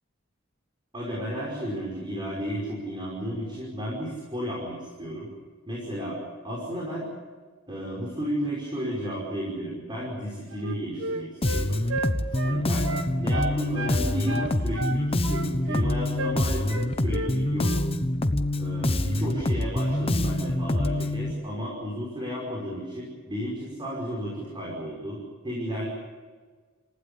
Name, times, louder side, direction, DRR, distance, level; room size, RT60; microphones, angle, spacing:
voice 1, 0.9-5.3 5.7-6.2 6.4-7.1 7.7-11.9 12.4-12.9 13.2-17.7 18.6-25.2 25.4-25.9, equal, 25° right, -3 dB, 5.6 m, -33 dB
Wind instrument woodwind instrument, 10.5-14.0 14.3-15.9 16.2-16.4 16.7-17.3 17.6-17.9, right 2 dB, 80° right, 1.7 m, -33 dB
Bass guitar, 11.4-21.3, left 1 dB, 30° left, 1.0 m, -26 dB
28.5 x 16.5 x 8.4 m, 1.5 s
head